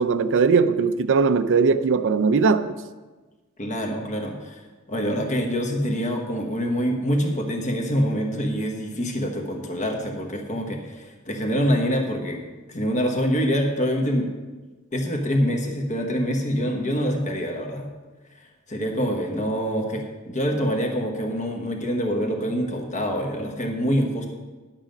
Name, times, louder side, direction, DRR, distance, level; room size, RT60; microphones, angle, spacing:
voice 1, 0.0-2.8, right 5 dB, 60° right, 0.5 m, -19 dB
voice 2, 3.6-12.4 12.7-14.3 14.9-17.9 18.7-24.3, equal, 35° left, 1.1 m, -25 dB
10.5 x 7.3 x 5.2 m
head